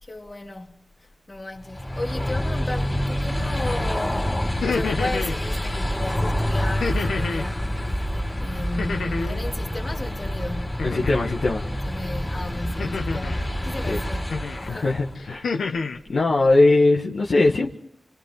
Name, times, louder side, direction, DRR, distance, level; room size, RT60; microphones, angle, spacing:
voice 1, 0.0-7.9 8.4-11.1 11.8-15.0, left 2 dB, 40° left, 3.0 m, -35 dB
sound 1, 1.6-15.1, equal, 15° left, 2.9 m, -27 dB
sound 2, 4.5-5.4 6.8-7.5 8.8-9.4 10.8-11.4 12.8-13.4 14.3-14.7 15.1-16.0, left 4 dB, 90° left, 1.2 m, -28 dB
voice 2, 10.8-11.6 13.9-14.0 14.7-15.5 16.1-17.7, left 2 dB, 70° left, 1.6 m, -20 dB
29.5 x 26.5 x 3.9 m
cardioid pair, 45°, 0 cm